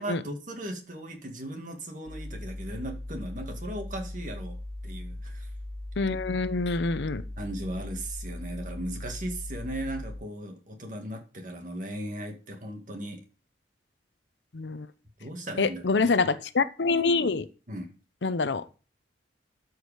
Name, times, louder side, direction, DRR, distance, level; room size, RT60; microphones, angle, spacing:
voice 1, 0.0-5.5 7.4-13.2 15.2-16.1 17.7-17.9, right 1 dB, 45° right, 2.0 m, -37 dB
sound 1, 2.1-10.2, left 1 dB, 5° left, 3.5 m, -39 dB
voice 2, 6.0-7.2 14.5-14.9 15.6-17.5 18.2-18.6, left 4 dB, 80° left, 0.7 m, -26 dB
12.5 x 4.9 x 4.9 m
head